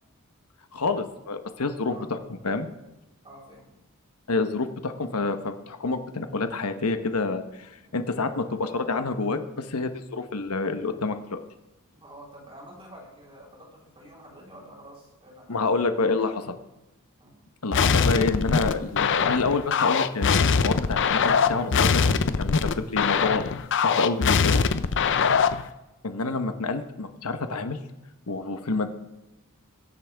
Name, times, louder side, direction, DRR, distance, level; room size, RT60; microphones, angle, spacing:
voice 1, 0.7-2.7 4.3-11.4 15.5-16.6 17.6-24.6 26.0-27.8 28.3-28.9, left 3 dB, 85° left, 8 dB, 1.1 m, -28 dB
voice 2, 3.2-3.7 7.9-8.0 11.9-15.8 17.2-17.3 28.6-28.8, right 1 dB, 25° right, -3 dB, 4.0 m, -48 dB
sound 1, 17.7-25.7, left 5 dB, 55° left, 0.6 m, -22 dB
21.5 x 10.5 x 3.5 m, 0.97 s
head